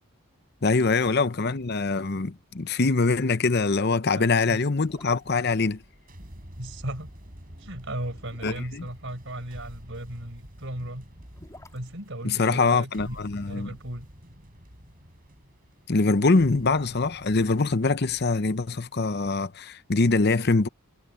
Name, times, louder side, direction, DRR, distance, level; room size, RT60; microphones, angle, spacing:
voice 1, 0.6-5.8 8.4-8.9 12.2-13.7 15.9-20.7, left 3 dB, 50° left, 0.8 m, -23 dB
sound 1, 1.5-2.2 2.5-2.6 3.0-3.1 3.8-3.9 4.6-5.5 7.0-9.7 11.0-13.2 13.5-13.6, left 1 dB, 15° left, 4.5 m, -51 dB
voice 2, 4.2-4.6 6.4-7.1 7.6-11.1 11.7-13.2 13.5-14.1, right 1 dB, 60° right, 6.0 m, -36 dB
sound 2, 4.8-19.2, equal, 40° right, 6.9 m, -49 dB
head